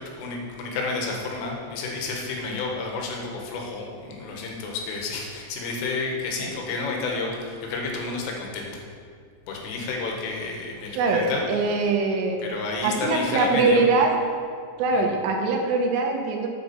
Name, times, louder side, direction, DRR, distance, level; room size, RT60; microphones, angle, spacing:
voice 1, 0.0-8.8 9.4-11.7 12.4-13.9 14.9-15.0, left 3 dB, 85° left, 0 dB, 4.0 m, -30 dB
voice 2, 11.0-12.4 12.8-14.1 14.8-16.5, right 3 dB, 80° right, 2 dB, 3.5 m, -22 dB
8.7 x 6.8 x 6.9 m, 2.1 s
omnidirectional pair, 5.7 m